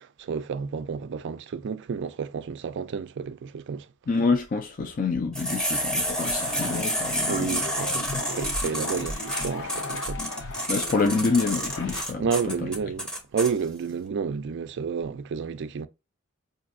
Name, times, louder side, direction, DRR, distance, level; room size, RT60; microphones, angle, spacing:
voice 1, 0.0-3.9 7.2-10.4 12.2-15.9, right 6 dB, 55° right, 0.4 m, -31 dB
voice 2, 4.1-7.6 8.1-8.2 10.7-12.3 12.6-12.7, left 4 dB, 40° left, 0.4 m, -27 dB
sound 1, 5.3-13.5, equal, 5° left, 0.7 m, -29 dB
sound 2, 6.1-12.0, left 2 dB, 60° left, 0.8 m, -36 dB
4.9 x 2.6 x 2.5 m
head